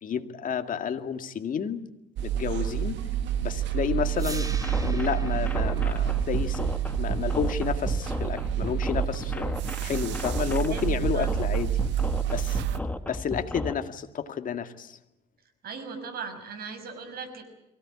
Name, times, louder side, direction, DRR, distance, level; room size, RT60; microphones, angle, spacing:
voice 1, 0.0-1.8 2.2-3.0 3.4-4.5 4.8-6.7 7.0-9.5 9.8-11.7 12.3-12.6 13.0-15.0, left 7 dB, 45° left, 7 dB, 2.1 m, -30 dB
sound 1, 2.2-12.8, right 10 dB, 75° right, 1.5 m, -28 dB
sound 2, 4.1-10.2, right 2 dB, 20° right, 2.2 m, -45 dB
sound 3, 4.4-13.7, left 2 dB, 10° left, 1.4 m, -34 dB
voice 2, 10.7-11.5 12.7-13.0 15.6-17.4, right 5 dB, 55° right, 6 dB, 5.9 m, -39 dB
23.5 x 17.0 x 9.9 m, 0.91 s
cardioid pair, 105°, 19 cm